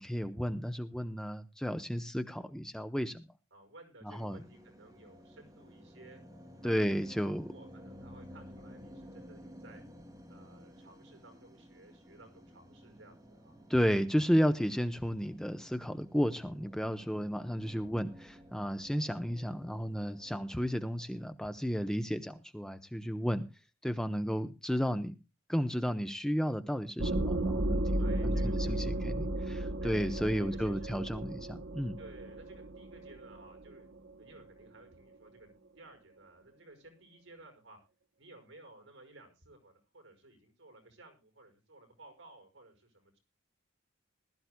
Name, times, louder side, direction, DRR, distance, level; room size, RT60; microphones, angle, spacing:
voice 1, 0.0-3.2 4.0-4.4 6.6-7.5 13.7-23.4 23.8-25.1 25.5-32.0, equal, 5° left, 8 dB, 0.7 m, -33 dB
voice 2, 3.5-6.2 6.6-6.9 7.2-9.8 10.3-13.6 28.0-29.0 29.8-29.9 30.2-30.9 32.0-33.9 34.2-35.5 35.8-37.8 38.2-43.2, right 2 dB, 70° right, 4 dB, 5.7 m, -56 dB
sound 1, 4.1-21.3, equal, 20° right, 2.5 m, -54 dB
sound 2, 27.0-34.4, right 1 dB, 85° right, 1.0 m, -34 dB
20.5 x 13.0 x 2.2 m, 0.28 s
head